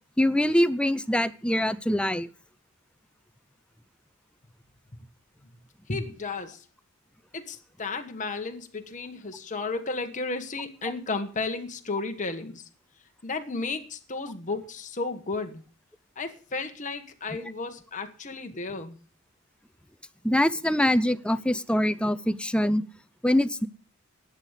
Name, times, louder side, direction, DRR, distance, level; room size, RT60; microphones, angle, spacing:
voice 1, 0.2-2.3 20.2-22.8 23.2-23.7, left 1 dB, 5° left, 14 dB, 0.5 m, -24 dB
voice 2, 5.9-6.6 7.3-12.6 13.2-15.6 16.2-19.0, left 3 dB, 35° left, 5 dB, 1.4 m, -33 dB
11.5 x 8.1 x 8.2 m, 0.39 s
head